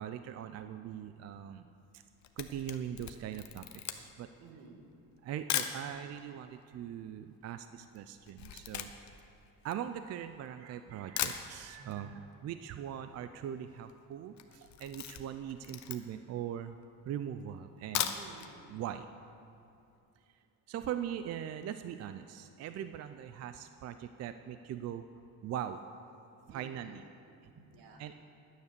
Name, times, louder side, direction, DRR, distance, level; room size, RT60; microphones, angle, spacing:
voice 1, 0.0-1.7 1.9-2.0 2.4-4.3 5.2-8.9 9.6-16.8 17.1-18.1 18.7-19.1 20.7-25.0 25.4-25.8 26.5-27.0 28.0-28.1, right 10 dB, 45° right, 10 dB, 0.5 m, -41 dB
Camera, 2.0-5.8 6.5-6.6 6.8-10.5 10.9-11.0 11.2-12.0 12.3-12.4 12.7-12.8 12.9-13.4 13.7-13.9 14.3-16.3 16.8-16.9 17.7-18.5 18.9-19.0 19.3-19.4, left 10 dB, 50° left, 0.8 m, -38 dB
voice 2, 4.4-4.9 11.7-12.2 18.1-18.6 26.4-28.1, right 3 dB, 80° right, 2 dB, 2.0 m, -54 dB
10.5 x 9.6 x 6.7 m, 2.6 s
cardioid pair, 135°, 35 cm